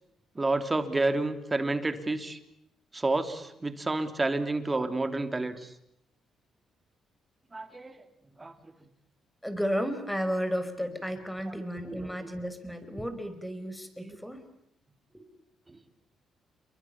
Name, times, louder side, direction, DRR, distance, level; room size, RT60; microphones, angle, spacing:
voice 1, 0.3-2.4 2.9-5.7 7.5-7.9 8.4-8.5 11.5-11.6 12.0-12.1 14.0-14.2, right 2 dB, 20° right, 9 dB, 3.0 m, -29 dB
voice 2, 9.4-14.4 15.1-15.2, equal, 5° left, 10 dB, 5.0 m, -33 dB
29.0 x 23.0 x 8.7 m, 0.76 s
cardioid pair, 90°, 0 cm